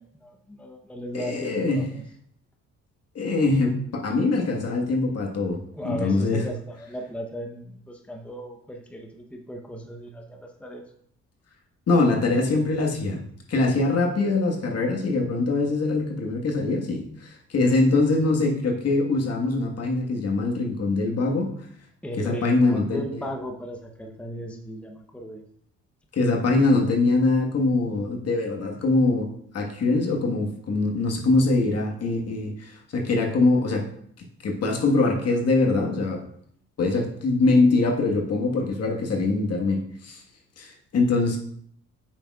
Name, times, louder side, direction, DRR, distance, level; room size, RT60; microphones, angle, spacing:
voice 1, 0.0-2.0 5.7-10.8 22.0-25.4, equal, 5° left, 2 dB, 0.8 m, -36 dB
voice 2, 1.1-1.9 3.1-6.4 11.9-13.2 13.5-21.5 22.2-23.0 26.1-33.9 34.2-36.2 36.8-40.2 40.6-41.4, left 3 dB, 55° left, 0 dB, 1.5 m, -23 dB
8.3 x 6.4 x 2.4 m, 0.66 s
cardioid pair, 90°, 30 cm